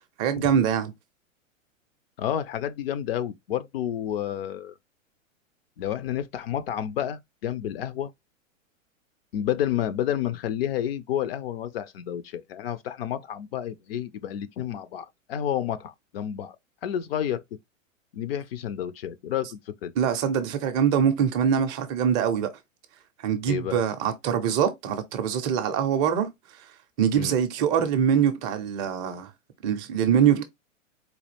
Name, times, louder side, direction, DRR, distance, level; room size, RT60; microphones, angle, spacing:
voice 1, 0.2-0.9 20.0-22.5 23.2-26.3 27.0-29.3 29.6-30.4, right 8 dB, 25° right, 0.4 m, -23 dB
voice 2, 2.2-4.7 5.8-8.1 9.3-16.6 16.8-17.4 18.1-19.9 23.5-23.8 27.2-27.4, left 10 dB, 50° left, 0.4 m, -30 dB
4.1 x 2.3 x 3.2 m
hypercardioid pair, 120°, 40 cm